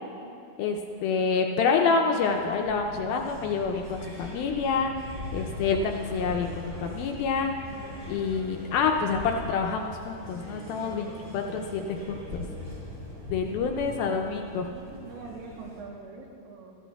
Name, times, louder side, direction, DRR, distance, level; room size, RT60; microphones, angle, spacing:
voice 1, 0.6-4.9 5.3-7.5 8.1-12.4 13.3-14.7, left 5 dB, 80° left, 3 dB, 2.2 m, -27 dB
sound 1, 2.2-15.8, left 1 dB, 30° right, 3.6 m, -41 dB
Thunder, 6.5-13.1, equal, 50° right, 3.2 m, -50 dB
voice 2, 14.6-16.8, right 4 dB, 70° right, 0 dB, 2.7 m, -44 dB
19.0 x 13.5 x 2.3 m, 2.5 s
omnidirectional pair, 4.6 m